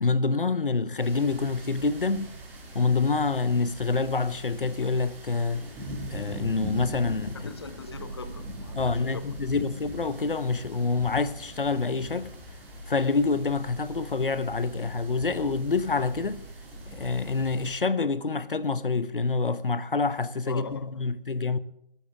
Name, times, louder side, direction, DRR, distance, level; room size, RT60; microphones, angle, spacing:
voice 1, 0.0-2.4 2.7-5.6 6.1-7.5 8.8-12.3 12.9-16.5 16.9-21.6, left 4 dB, 65° left, 1.1 m, -27 dB
sound 1, 1.0-17.8, right 1 dB, 5° right, 2.1 m, -41 dB
voice 2, 7.3-9.2 20.5-21.1, left 4 dB, 25° left, 0.8 m, -41 dB
22.5 x 13.0 x 3.6 m
figure-of-eight pair, 160°, 29 cm